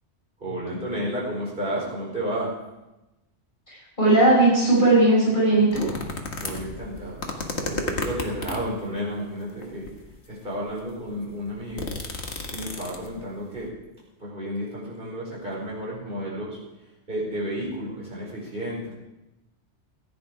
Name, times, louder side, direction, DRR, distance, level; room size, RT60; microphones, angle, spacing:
voice 1, 0.4-2.5 6.4-7.3 7.6-9.9 10.3-11.9 12.5-13.7 14.2-16.6 17.1-18.9, equal, 45° right, -5 dB, 5.1 m, -32 dB
voice 2, 3.7-5.8, right 2 dB, 40° left, -7 dB, 6.5 m, -18 dB
sound 1, 5.7-8.8 9.6-10.1 10.7-10.8 11.0-13.2 13.6-13.7, left 2 dB, 65° left, 1.8 m, -32 dB
15.5 x 9.9 x 4.9 m, 0.98 s
omnidirectional pair, 1.2 m